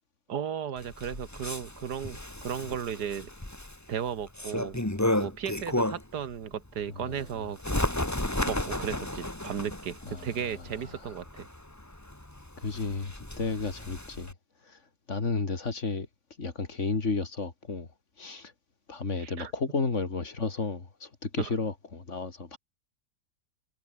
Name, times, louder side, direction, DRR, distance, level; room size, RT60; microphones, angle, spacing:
voice 1, 0.3-3.3 3.9-4.8 5.2-7.6 8.5-11.5 19.2-19.5 21.4-21.5, right 8 dB, 70° right, 1.9 m, -35 dB
Bird, 0.8-6.2 6.6-14.3, left 1 dB, 10° left, 2.0 m, -33 dB
voice 2, 7.0-7.3 10.1-10.3 12.6-14.3 14.7-14.8 15.1-16.1 16.4-17.9 18.2-18.5 18.9-22.6, left 4 dB, 45° left, 2.8 m, -32 dB
omnidirectional pair, 1.8 m